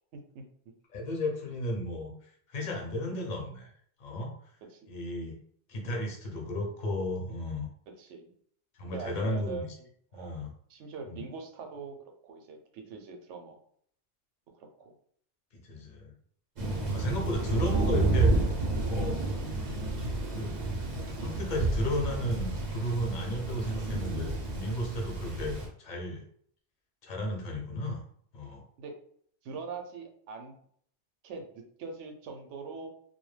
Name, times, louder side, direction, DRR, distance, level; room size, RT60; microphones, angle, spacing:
voice 1, 0.1-0.4 3.1-3.3 4.7-4.9 5.8-6.1 8.0-8.3 8.8-9.9 10.1-10.4 10.7-13.6 14.5-14.9 16.9-17.2 17.5-17.8 19.0-19.2 25.9-26.0 28.8-28.9 29.4-30.5 31.2-32.9, right 4 dB, 80° right, 4 dB, 0.9 m, -43 dB
voice 2, 0.9-3.7 4.0-4.3 4.9-5.4 5.7-7.7 8.7-9.7 10.1-10.5 11.1-11.2 15.5-16.1 16.9-18.3 18.9-19.2 20.3-20.6 21.2-26.2 27.0-28.0 28.3-28.6, left 1 dB, 50° left, 0 dB, 0.7 m, -34 dB
Thunder, 16.6-25.7, right 2 dB, 45° right, 0.6 m, -30 dB
2.2 x 2.0 x 3.1 m, 0.62 s
omnidirectional pair, 1.2 m